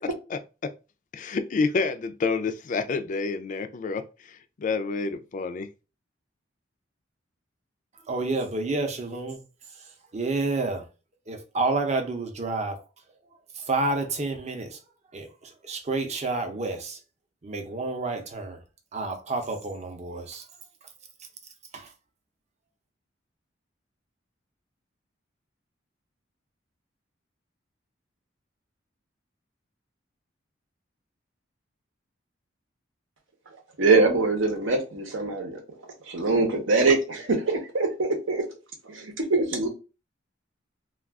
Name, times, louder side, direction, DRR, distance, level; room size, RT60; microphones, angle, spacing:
voice 1, 0.3-0.7 1.1-5.7, left 4 dB, 40° left, 0.3 m, -29 dB
voice 2, 8.1-9.4 10.1-10.8 11.3-12.8 13.6-14.8 15.1-17.0 17.4-18.6 18.9-20.4 21.7-21.9, right 3 dB, 35° right, 0.6 m, -29 dB
voice 3, 33.8-35.6 36.1-38.5 38.8-39.7, right 3 dB, 85° right, 0.8 m, -23 dB
2.3 x 2.3 x 3.4 m
head